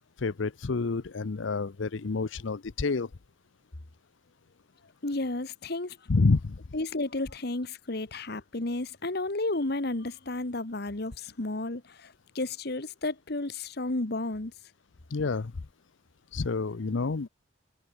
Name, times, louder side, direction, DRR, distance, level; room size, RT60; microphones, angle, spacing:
voice 1, 0.2-3.1 6.1-6.6 15.1-15.5 16.3-17.3, left 3 dB, 75° left, 0.7 m, -28 dB
voice 2, 5.0-6.0 6.7-14.5, left 2 dB, 55° left, 1.5 m, -32 dB
head